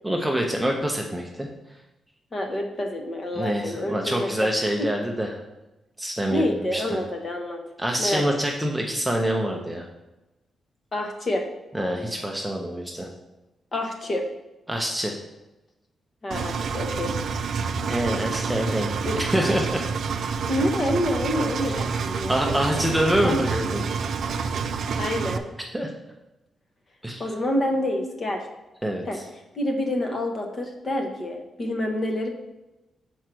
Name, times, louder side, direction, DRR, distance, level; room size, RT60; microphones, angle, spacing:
voice 1, 0.0-1.5 3.3-5.4 6.0-6.4 6.7-6.8 7.8-9.9 11.7-13.1 14.7-15.2 17.8-19.8 22.3-23.8 25.7-25.9 27.0-27.3 28.8-29.2, equal, 5° right, 0 dB, 0.6 m, -26 dB
voice 2, 2.3-4.5 4.8-4.9 6.3-7.6 8.0-8.2 10.9-11.5 13.7-14.2 16.2-17.1 19.0-19.2 20.4-22.9 23.2-23.4 25.0-25.5 27.2-28.4 29.1-29.2 29.5-32.3, left 1 dB, 30° left, 3 dB, 1.0 m, -27 dB
Engine, 16.3-25.4, right 5 dB, 60° right, 0.4 m, -28 dB
6.3 x 4.5 x 6.0 m, 1.0 s
wide cardioid pair, 160°, 0 cm